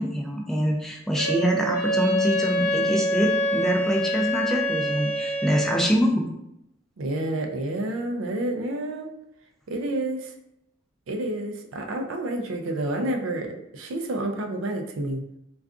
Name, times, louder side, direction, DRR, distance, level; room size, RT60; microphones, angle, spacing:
voice 1, 0.0-6.2, equal, ahead, 0 dB, 0.3 m, -25 dB
Wind instrument woodwind instrument, 1.2-5.8, equal, 65° left, 0.9 m, -25 dB
voice 2, 7.0-9.1 9.7-10.3 11.1-15.2, right 1 dB, 85° right, 4 dB, 0.4 m, -29 dB
3.6 x 2.3 x 2.3 m, 0.82 s
head